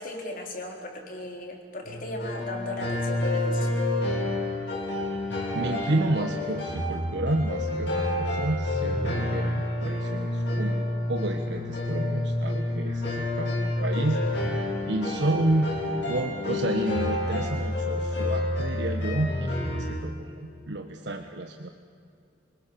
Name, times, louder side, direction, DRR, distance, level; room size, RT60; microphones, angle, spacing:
voice 1, 0.0-3.8, left 1 dB, 50° left, 2 dB, 3.9 m, -37 dB
sound 1, 1.9-20.0, left 1 dB, 80° left, 6.5 m, -29 dB
voice 2, 5.5-15.8 16.1-21.7, right 2 dB, 70° right, 4 dB, 1.3 m, -30 dB
27.5 x 20.0 x 7.0 m, 2.4 s
head